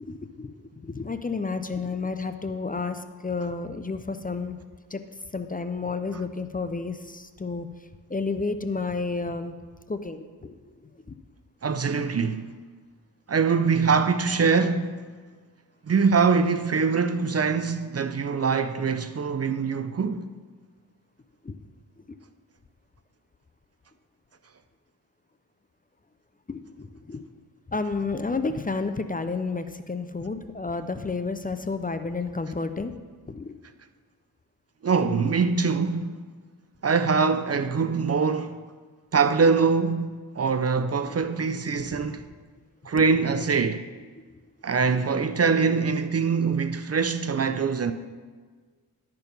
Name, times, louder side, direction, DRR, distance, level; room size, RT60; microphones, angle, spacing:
voice 1, 0.0-4.6 4.9-5.0 5.3-7.7 8.1-9.6 9.9-10.6 10.8-11.2 21.4-21.5 26.5-27.3 27.7-32.9 33.2-33.5, left 4 dB, 20° left, 0.5 m, -31 dB
voice 2, 11.6-12.5 13.3-15.0 15.9-20.3 34.8-36.2 36.8-38.6 39.1-42.2 42.8-43.8 44.6-47.9, right 5 dB, 40° right, 0.5 m, -23 dB
12.0 x 4.6 x 5.3 m
cardioid pair, 55°, 40 cm